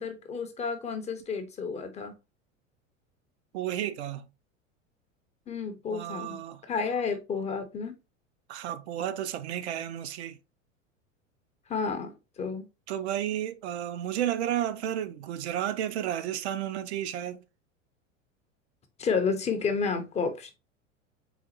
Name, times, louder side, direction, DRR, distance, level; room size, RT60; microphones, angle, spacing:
voice 1, 0.0-2.1 5.5-7.9 11.7-12.1 12.4-12.7 19.0-20.5, left 5 dB, 15° left, 0.5 m, -31 dB
voice 2, 3.5-4.2 5.9-6.6 8.5-10.4 12.9-17.4, right 11 dB, 55° right, 0.5 m, -32 dB
3.9 x 3.7 x 2.8 m
figure-of-eight pair, 80°, 40 cm